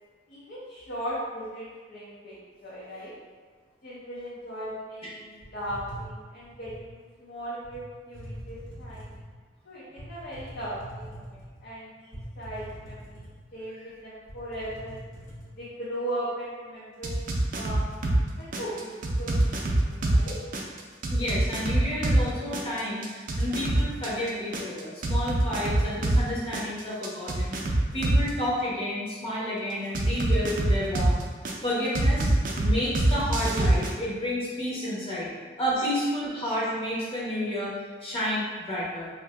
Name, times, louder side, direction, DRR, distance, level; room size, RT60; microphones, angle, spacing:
voice 1, 0.3-3.1 3.8-9.1 9.6-15.0 15.6-20.4, right 1 dB, 55° left, -9 dB, 0.7 m, -38 dB
sound 1, 5.4-6.9 7.6-7.8 8.1-9.3 10.0-11.6 12.1-13.6 13.9-14.0 14.3-15.5, equal, 75° left, 1.1 m, -43 dB
sound 2, 17.0-18.2 18.5-22.2 22.5-26.2 26.5-28.3 29.9-31.5 31.9-33.9, right 1 dB, 45° right, 0.4 m, -24 dB
voice 2, 21.1-31.2 31.6-32.3 32.5-35.3 35.6-39.1, left 1 dB, 30° left, -7 dB, 0.9 m, -30 dB
2.6 x 2.6 x 3.3 m, 1.5 s
head